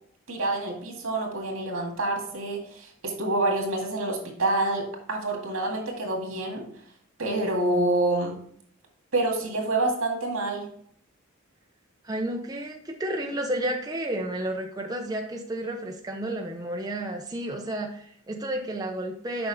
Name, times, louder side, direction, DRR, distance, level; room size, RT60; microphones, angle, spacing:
voice 1, 0.3-6.6 7.2-8.3 9.1-10.7, right 2 dB, 80° right, 1 dB, 2.1 m, -27 dB
voice 2, 12.0-19.5, right 1 dB, 20° right, 1 dB, 0.6 m, -31 dB
6.8 x 5.2 x 4.0 m, 0.63 s
head